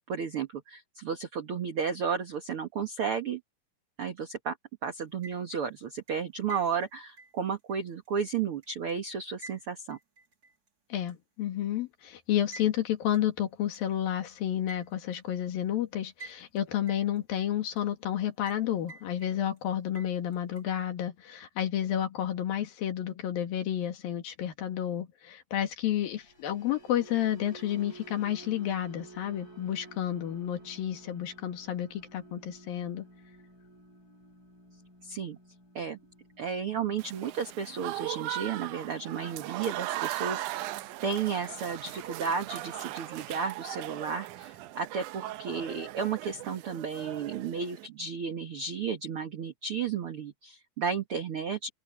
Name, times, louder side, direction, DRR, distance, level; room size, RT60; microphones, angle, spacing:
voice 1, 0.0-3.4 4.0-4.6 4.8-10.0 35.0-35.4 35.8-36.0 36.4-40.8 41.0-51.7, right 6 dB, 50° right, 2.0 m, -33 dB
sound 1, 5.0-5.7 6.1-8.9 9.4-10.7 11.1-11.2 12.5-12.7 13.1-13.2 13.7-13.8 14.7-15.2 16.2-16.6 16.9-17.8 18.5-18.6 18.9-19.6 19.9-20.6, right 3 dB, 25° right, 3.2 m, -49 dB
voice 2, 10.9-33.1, left 11 dB, 85° left, 3.8 m, -31 dB
sound 2, 26.0-42.4 42.7-43.0 43.4-43.6, right 3 dB, 25° left, 6.3 m, -53 dB
Applause / Crowd, 37.0-47.9, right 16 dB, 80° right, 2.0 m, -38 dB
omnidirectional pair, 4.0 m